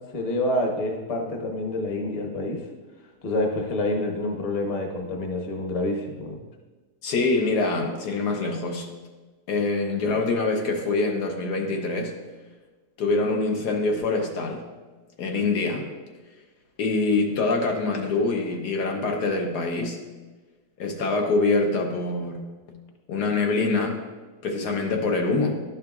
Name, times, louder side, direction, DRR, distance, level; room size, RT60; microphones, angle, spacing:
voice 1, 0.1-2.6 3.2-6.4, left 1 dB, 30° left, 2 dB, 0.7 m, -27 dB
voice 2, 7.0-8.9 9.5-12.1 13.0-14.6 15.2-15.9 16.8-20.0 20.8-22.5 23.1-24.0 24.4-25.6, left 3 dB, 85° left, 2 dB, 1.5 m, -25 dB
11.5 x 5.7 x 2.4 m, 1.3 s
omnidirectional pair, 1.7 m